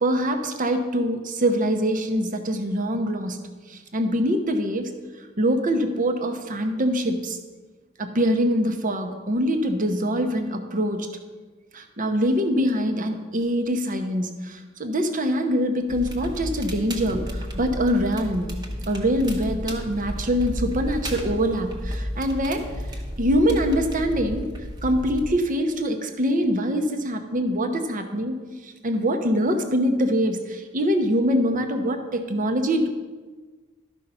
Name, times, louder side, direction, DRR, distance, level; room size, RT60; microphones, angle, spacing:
voice 1, 0.0-3.4 3.7-4.9 5.4-7.4 8.0-11.1 11.7-18.5 18.9-22.7 23.2-24.5 24.8-28.4 28.6-32.9, equal, 40° right, 6 dB, 0.9 m, -24 dB
Crackle, 15.9-25.3, equal, 20° right, 1.1 m, -32 dB
12.5 x 5.5 x 5.5 m, 1.4 s
head